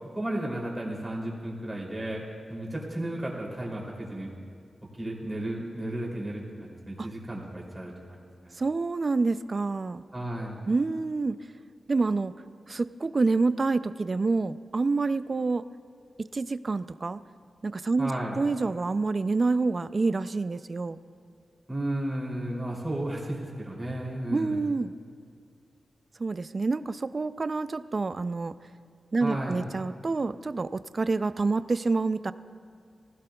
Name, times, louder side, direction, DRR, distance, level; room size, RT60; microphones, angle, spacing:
voice 1, 0.1-2.2 2.5-4.3 5.0-8.5 10.1-10.6 18.0-18.4 21.7-24.6 29.2-29.7, right 1 dB, 15° right, -3 dB, 2.9 m, -33 dB
voice 2, 8.6-10.0 10.7-11.4 11.9-12.3 12.7-15.6 16.2-17.2 17.6-18.1 18.4-21.0 24.3-24.9 26.2-28.5 29.1-32.3, right 3 dB, 40° right, 14 dB, 0.3 m, -27 dB
19.0 x 16.0 x 2.3 m, 2.2 s
wide cardioid pair, 115°, 0 cm